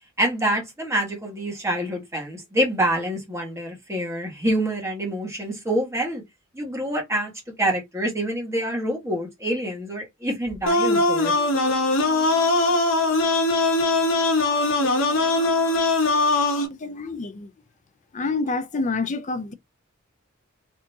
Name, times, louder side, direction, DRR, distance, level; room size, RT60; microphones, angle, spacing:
voice 1, 0.2-6.2 6.5-7.3 7.6-11.3, right 1 dB, 15° right, 1.3 m, -26 dB
sound 1, 10.7-16.7, left 2 dB, 70° left, 1.0 m, -21 dB
voice 2, 16.7-17.5 18.1-19.5, left 3 dB, 35° left, 0.4 m, -28 dB
3.5 x 2.8 x 2.7 m
head